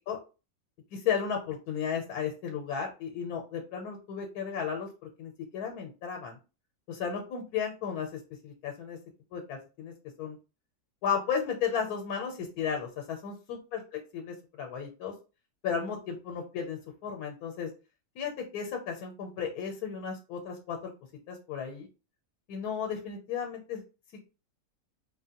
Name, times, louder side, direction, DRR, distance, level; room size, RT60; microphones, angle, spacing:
voice 1, 0.9-4.9 5.2-6.4 6.9-9.0 9.3-10.4 11.0-13.8 14.1-15.1 15.6-17.7 18.1-20.9 21.3-21.9 22.5-23.8, left 7 dB, 90° left, 2 dB, 1.2 m, -34 dB
3.3 x 2.1 x 2.8 m, 0.32 s
omnidirectional pair, 1.6 m